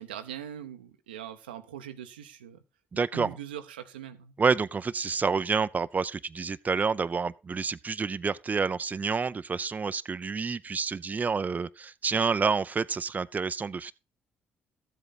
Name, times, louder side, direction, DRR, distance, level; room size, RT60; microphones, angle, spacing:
voice 1, 0.0-2.6 2.9-4.3, right 10 dB, 90° right, 0.7 m, -41 dB
voice 2, 2.9-3.3 4.4-13.9, right 5 dB, 30° right, 0.5 m, -28 dB
13.0 x 7.8 x 4.1 m
hypercardioid pair, 45°, 5 cm